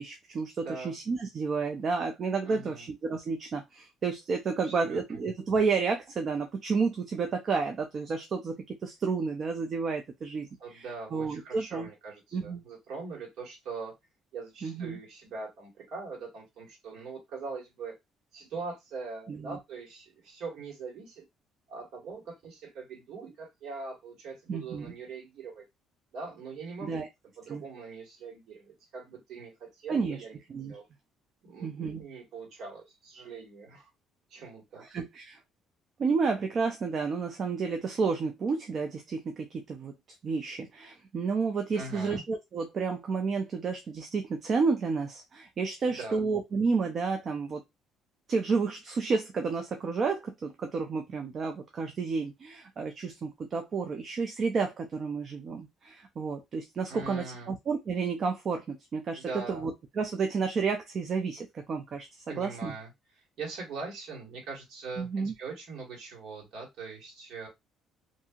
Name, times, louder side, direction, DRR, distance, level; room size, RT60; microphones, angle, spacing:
voice 1, 0.0-11.9 12.3-12.6 14.6-15.0 19.3-19.6 24.5-24.9 26.8-27.1 27.5-27.6 29.9-30.2 30.5-30.8 31.6-32.0 34.8-35.4 36.0-39.9 40.2-47.6 48.3-62.7 65.0-65.3, right 4 dB, 35° right, 0.4 m, -31 dB
voice 2, 0.6-0.9 2.4-2.9 4.6-5.0 10.6-13.9 14.3-17.9 18.3-21.2 21.7-25.6 26.1-27.0 27.4-30.4 30.7-30.8 31.4-33.9 34.3-34.8 41.7-42.2 45.8-46.2 56.9-57.5 59.2-59.7 62.3-62.9 63.4-67.5, right 4 dB, 60° right, 1.5 m, -42 dB
2.8 x 2.6 x 2.4 m
cardioid pair, 155°, 0 cm